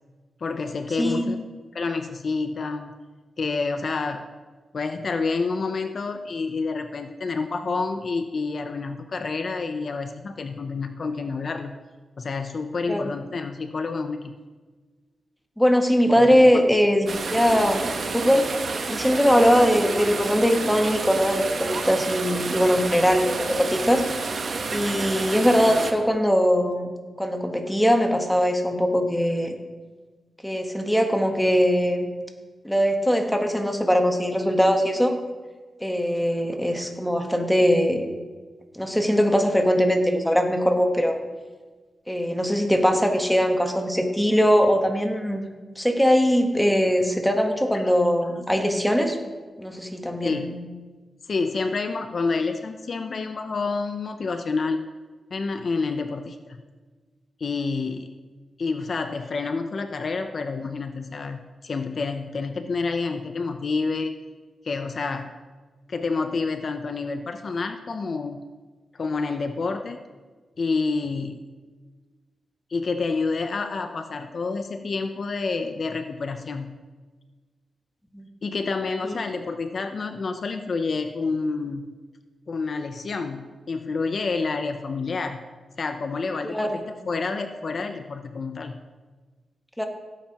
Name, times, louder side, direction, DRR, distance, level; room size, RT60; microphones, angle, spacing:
voice 1, 0.4-1.4 1.7-2.9 3.4-4.3 4.7-11.7 12.2-14.3 16.1-16.6 47.7-47.9 48.2-48.3 50.2-50.6 51.3-54.9 55.3-56.6 57.4-58.1 58.6-64.1 64.6-65.3 65.9-68.4 68.9-70.0 70.6-71.4 72.7-76.8 78.4-81.9 82.5-85.4 85.8-88.8, left 4 dB, 55° left, 7 dB, 0.6 m, -28 dB
voice 2, 1.0-1.4 12.9-13.0 15.6-18.5 18.9-24.0 24.7-26.9 27.2-29.5 30.4-32.1 32.6-35.1 35.8-38.1 38.7-41.1 42.1-45.4 45.8-49.2 49.6-50.6 78.1-78.3 79.0-79.1 86.4-86.8 89.8-89.9, equal, 5° left, 3 dB, 1.3 m, -21 dB
sound 1, 17.1-25.9, right 4 dB, 65° right, 1.1 m, -30 dB
16.5 x 8.8 x 3.0 m, 1.4 s
wide cardioid pair, 100°, 0 cm